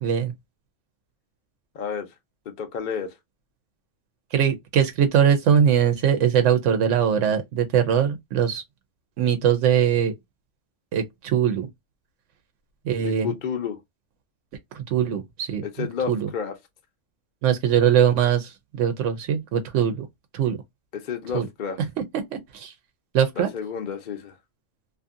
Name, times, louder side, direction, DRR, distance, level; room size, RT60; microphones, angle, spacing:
voice 1, 0.0-0.3 4.3-8.6 9.2-10.1 10.9-11.7 12.8-13.3 14.7-16.3 17.4-20.1 20.3-20.6 21.3-21.5 22.3-22.7 23.1-23.5, right 8 dB, 80° right, 0.9 m, -21 dB
voice 2, 1.7-2.1 2.6-3.1 13.0-13.8 15.6-16.5 20.9-21.8 23.4-24.3, left 7 dB, 50° left, 0.6 m, -30 dB
2.6 x 2.6 x 2.4 m
omnidirectional pair, 1.2 m